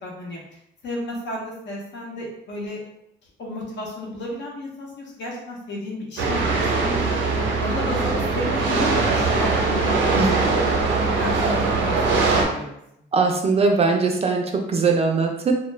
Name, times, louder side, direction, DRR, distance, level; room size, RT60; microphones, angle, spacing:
voice 1, 0.0-0.4 0.8-2.8 3.4-7.2 7.6-10.5 10.9-12.7, left 1 dB, 70° left, -2 dB, 0.9 m, -32 dB
sound 1, 6.2-12.4, right 3 dB, 85° right, 0.6 m, -21 dB
voice 2, 13.1-15.5, right 4 dB, 30° right, 2 dB, 0.4 m, -20 dB
2.3 x 2.2 x 3.1 m, 0.78 s
cardioid pair, 125°, 20 cm